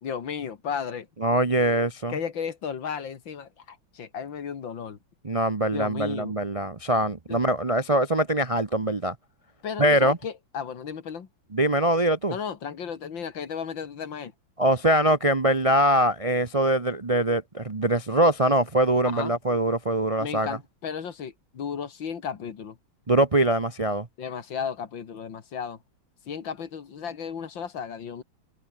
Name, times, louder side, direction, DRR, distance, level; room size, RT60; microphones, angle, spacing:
voice 1, 0.0-1.1 2.1-5.0 5.7-6.3 7.3-7.4 9.6-11.3 12.3-14.3 19.0-19.3 20.2-22.8 24.2-25.8 26.3-28.2, left 7 dB, 75° left, 2.6 m, -34 dB
voice 2, 1.2-2.1 5.2-9.1 9.8-10.2 11.5-12.3 14.6-20.6 23.1-24.1, right 1 dB, 30° right, 0.7 m, -23 dB
omnidirectional pair, 2.1 m